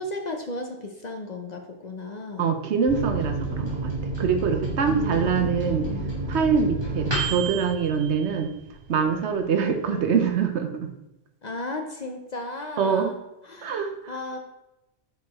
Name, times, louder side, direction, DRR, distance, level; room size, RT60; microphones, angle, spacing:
voice 1, 0.0-2.5 4.8-6.2 9.6-10.3 11.4-13.2 13.4-14.4, left 2 dB, 45° left, 4 dB, 0.6 m, -35 dB
voice 2, 2.4-3.9 4.2-5.8 6.3-8.5 8.9-10.9 12.8-13.1 13.6-14.1, right 6 dB, 75° right, 6 dB, 1.0 m, -24 dB
Microwave oven, 2.9-9.0 9.4-9.5 9.7-10.3, right 2 dB, 45° right, 2.8 m, -30 dB
6.5 x 4.7 x 4.1 m, 0.90 s
omnidirectional pair, 1.2 m